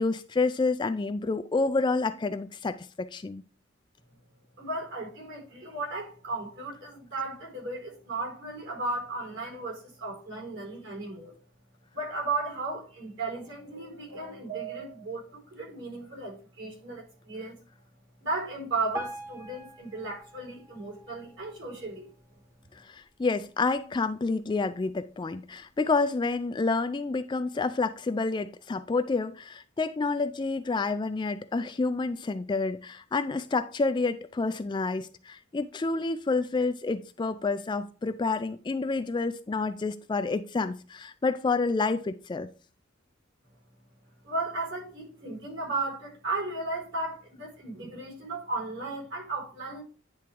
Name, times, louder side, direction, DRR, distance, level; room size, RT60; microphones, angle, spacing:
voice 1, 0.0-3.4 22.9-42.5, left 3 dB, 20° left, 0.3 m, -29 dB
voice 2, 4.6-11.3 11.9-17.6 18.2-22.1 44.2-49.8, right 2 dB, 60° right, 4.5 m, -35 dB
sound 1, 13.3-15.4, right 9 dB, 45° right, 3.8 m, -43 dB
Piano, 18.9-22.0 22.6-22.7 23.0-23.1 23.8-23.9 24.5-24.6, right 1 dB, 15° right, 1.0 m, -43 dB
10.0 x 3.6 x 4.5 m
head